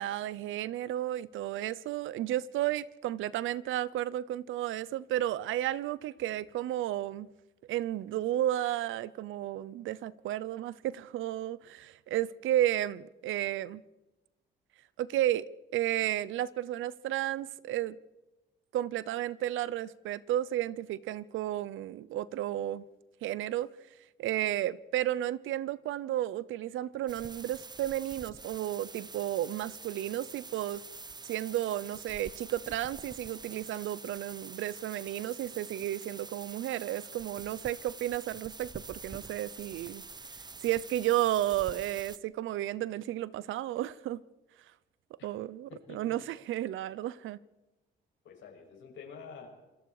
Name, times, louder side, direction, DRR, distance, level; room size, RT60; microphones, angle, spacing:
voice 1, 0.0-7.3 7.7-13.8 15.0-18.0 18.7-22.8 23.2-23.7 24.2-30.8 31.2-40.0 40.6-44.2 45.2-47.4, right 13 dB, 85° right, 0.8 m, -33 dB
sound 1, 27.1-42.2, right 4 dB, 20° right, 0.9 m, -47 dB
voice 2, 45.7-46.2 48.2-49.5, left 6 dB, 75° left, 6.6 m, -48 dB
27.5 x 20.0 x 4.9 m
cardioid pair, 90°, 20 cm